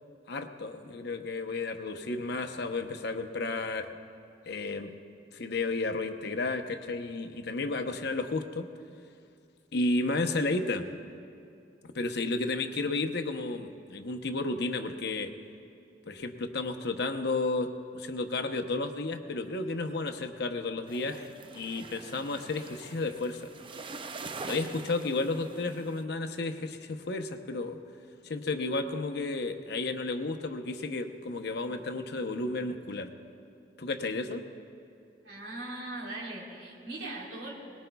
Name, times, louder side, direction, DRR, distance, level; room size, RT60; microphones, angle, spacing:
voice 1, 0.3-3.9 4.5-4.9 5.3-8.7 9.7-10.9 11.9-15.3 16.1-23.5 24.4-27.8 28.2-33.1 33.8-34.4, left 3 dB, 65° left, 7 dB, 0.8 m, -32 dB
sound 1, 20.9-26.0, right 4 dB, 30° right, 0.5 m, -44 dB
voice 2, 35.2-37.5, right 2 dB, 90° right, -4 dB, 3.6 m, -39 dB
21.5 x 19.5 x 2.3 m, 2.4 s
head